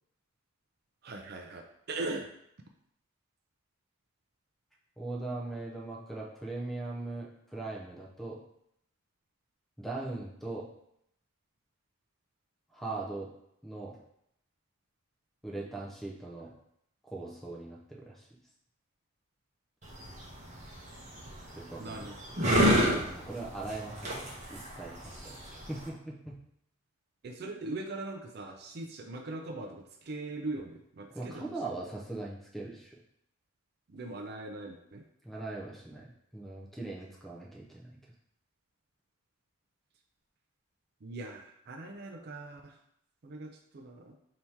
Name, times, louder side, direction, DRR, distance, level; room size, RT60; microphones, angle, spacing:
voice 1, 1.0-2.3 21.8-22.2 27.2-31.5 33.9-35.0 41.0-42.8 43.2-44.1, right 2 dB, 50° right, 3 dB, 0.4 m, -40 dB
voice 2, 5.0-8.4 9.8-10.7 12.7-13.3 13.6-14.0 15.4-16.5 17.0-18.3 21.5-22.1 23.0-26.4 31.1-33.0 35.2-38.0, right 2 dB, ahead, -3 dB, 0.6 m, -40 dB
sound 1, 19.8-25.9, equal, 35° right, 0.9 m, -30 dB
3.5 x 2.8 x 4.3 m, 0.74 s
head